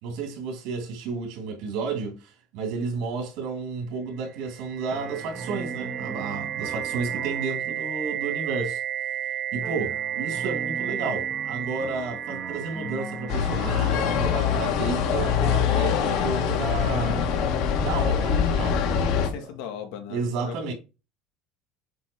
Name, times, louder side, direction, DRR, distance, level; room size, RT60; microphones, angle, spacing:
voice 1, 0.0-8.8 9.5-17.2 17.8-19.5 20.1-20.7, right 4 dB, 65° right, 2.8 m, -32 dB
sound 1, 2.8-3.0 4.9-7.6 9.6-19.1, right 3 dB, 15° right, 1.0 m, -40 dB
sound 2, 4.3-14.2, right 10 dB, 45° right, 0.7 m, -32 dB
sound 3, 13.3-19.3, left 7 dB, 60° left, 1.8 m, -24 dB
voice 2, 19.1-20.7, left 9 dB, 75° left, 2.0 m, -38 dB
8.4 x 3.9 x 4.5 m
cardioid pair, 170°, 0 cm